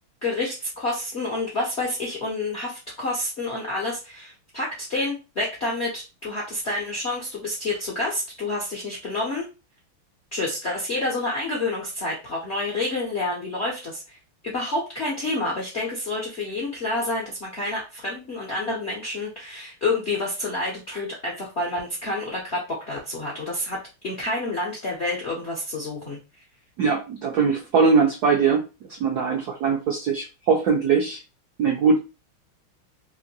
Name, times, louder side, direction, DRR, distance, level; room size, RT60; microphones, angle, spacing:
voice 1, 0.2-9.5 10.3-14.2 14.4-23.8 24.0-26.2, left 2 dB, 60° left, -4 dB, 0.7 m, -28 dB
voice 2, 26.8-28.7 29.0-31.2 31.6-32.0, right 5 dB, 75° right, 1 dB, 0.9 m, -21 dB
3.7 x 2.6 x 2.8 m, 0.29 s
omnidirectional pair, 2.4 m